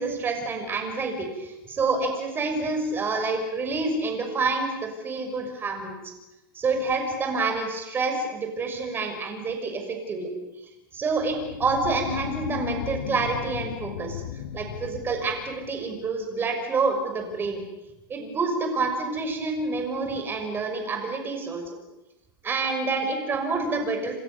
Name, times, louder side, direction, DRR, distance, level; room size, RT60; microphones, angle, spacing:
voice 1, 0.0-6.0 6.5-10.3 10.9-14.2 14.5-17.6 18.1-21.6 22.4-24.2, right 3 dB, 15° right, 4 dB, 6.1 m, -28 dB
sound 1, 11.1-16.1, left 9 dB, 80° left, 2.5 m, -35 dB
28.5 x 26.5 x 7.0 m, 0.95 s
supercardioid pair, 150°, 12 cm